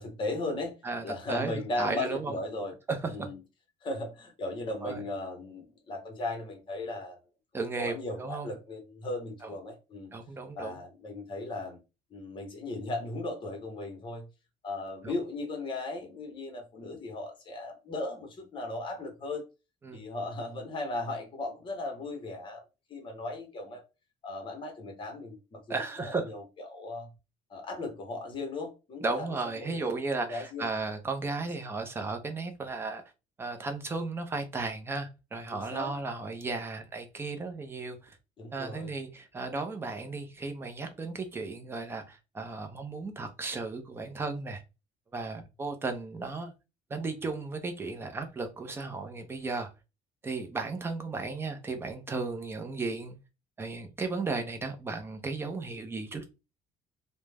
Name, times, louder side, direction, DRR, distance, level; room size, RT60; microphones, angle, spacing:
voice 1, 0.0-0.7 1.0-2.7 3.1-3.4 3.8-7.2 7.8-10.1 10.6-11.8 12.1-14.3 14.6-19.4 19.9-22.6 22.9-23.8 24.2-27.1 27.5-29.3 29.6-30.7 35.5-35.9 38.4-38.9, left 2 dB, 35° left, 0.9 m, -37 dB
voice 2, 0.8-2.3 2.9-3.3 4.8-5.0 7.5-8.5 9.4-9.5 10.1-10.8 15.0-15.1 19.8-20.0 25.7-26.3 29.0-33.0 33.4-38.2 38.5-44.6 45.1-46.5 46.9-49.7 50.2-53.2 53.6-56.3, right 3 dB, 15° right, 0.5 m, -35 dB
2.3 x 2.0 x 3.2 m
cardioid pair, 150°, 15 cm